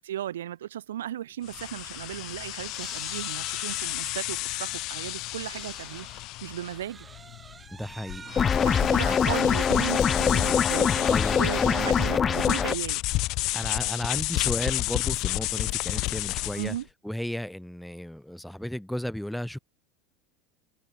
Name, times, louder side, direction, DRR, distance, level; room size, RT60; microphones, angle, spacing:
voice 1, 0.0-6.1 6.4-7.1 8.6-13.0 16.5-16.9, right 11 dB, 85° right, 3.9 m, -36 dB
sound 1, 1.3-1.4 1.6-1.8 2.7-6.3 6.7-8.5, right 5 dB, 20° right, 5.4 m, -48 dB
sound 2, 1.4-16.8, left 21 dB, 55° left, 1.9 m, -32 dB
voice 2, 7.7-9.4 11.1-12.0 13.5-16.8 17.0-19.6, equal, ahead, 2.5 m, -34 dB
sound 3, 8.4-12.7, left 7 dB, 30° left, 0.7 m, -23 dB
hypercardioid pair, 95°, 0 cm